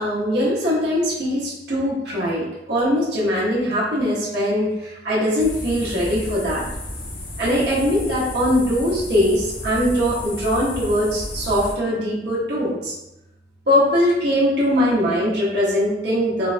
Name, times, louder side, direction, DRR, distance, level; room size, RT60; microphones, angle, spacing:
voice 1, 0.0-6.6 7.4-12.9 13.7-16.5, equal, 65° right, -8 dB, 1.0 m, -21 dB
sound 1, 5.4-11.7, left 1 dB, 50° left, 0.5 m, -33 dB
3.2 x 2.1 x 2.5 m, 0.92 s
head